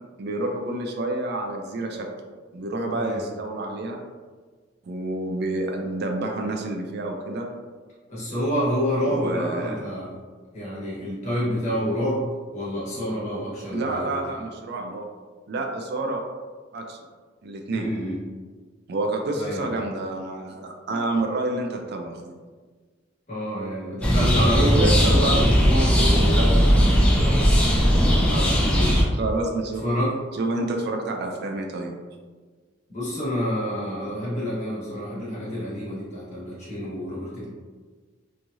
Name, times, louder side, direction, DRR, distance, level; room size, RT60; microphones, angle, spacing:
voice 1, 0.2-2.1 2.5-4.0 4.9-7.5 9.1-9.8 13.7-15.1 15.5-16.2 16.7-17.0 17.4-17.9 18.9-22.4 24.5-27.5 28.3-28.7 29.2-29.8 30.3-31.9, right 2 dB, 55° right, 2 dB, 0.4 m, -28 dB
voice 2, 8.1-10.1 10.5-12.3 12.5-14.4 17.7-18.2 19.3-19.7 23.3-25.7 28.5-29.0 29.8-30.1 32.9-37.5, equal, 40° left, -8 dB, 1.3 m, -28 dB
sound 1, 24.0-29.0, equal, 5° left, 0.4 m, -18 dB
3.1 x 2.3 x 2.6 m, 1.5 s
head